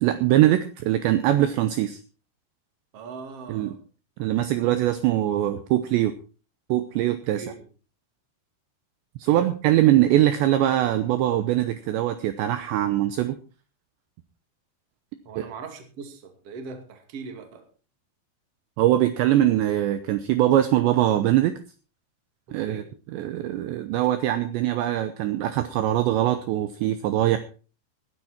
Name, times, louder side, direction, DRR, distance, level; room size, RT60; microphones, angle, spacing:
voice 1, 0.0-2.0 3.5-3.7 4.2-6.1 6.7-7.4 9.2-13.4 15.4-15.5 18.8-21.5 22.5-22.8 23.1-27.4, right 13 dB, 75° right, 10 dB, 2.7 m, -22 dB
voice 2, 2.9-3.8 7.3-7.7 9.3-9.5 15.2-17.7 22.6-22.9 23.9-24.1, right 4 dB, 40° right, 6 dB, 2.4 m, -40 dB
18.5 x 10.5 x 4.4 m, 0.35 s
omnidirectional pair, 5.9 m